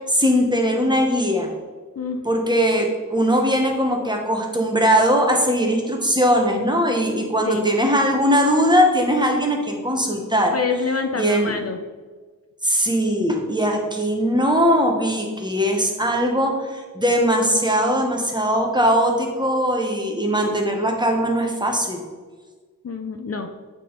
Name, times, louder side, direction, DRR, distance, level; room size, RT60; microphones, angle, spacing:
voice 1, 0.1-1.5 2.2-10.5 11.2-11.5 12.6-22.0, equal, 15° right, 1 dB, 1.0 m, -20 dB
voice 2, 2.0-2.3 7.4-7.7 10.5-11.8 22.8-23.5, left 4 dB, 50° left, 6 dB, 0.4 m, -26 dB
8.3 x 3.6 x 4.0 m, 1.4 s
wide cardioid pair, 80°, 32 cm